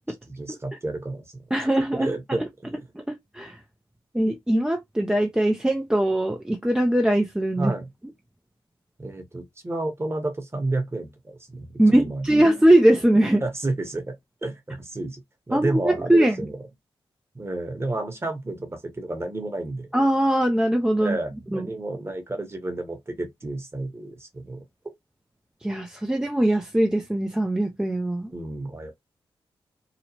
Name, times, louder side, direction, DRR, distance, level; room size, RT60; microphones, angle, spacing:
voice 1, 0.3-1.4 1.9-2.9 7.6-7.9 9.0-12.4 13.4-14.1 14.4-15.2 15.5-16.5 17.3-19.9 21.0-24.6 28.3-28.9, right 2 dB, 25° right, 1.0 m, -31 dB
voice 2, 1.5-2.1 2.4-2.5 2.9-3.6 4.1-7.7 11.8-13.4 15.5-16.5 19.9-21.2 21.5-21.7 25.6-28.3, right 1 dB, 10° right, 0.4 m, -21 dB
2.9 x 2.0 x 2.7 m
cardioid pair, 65°, 10 cm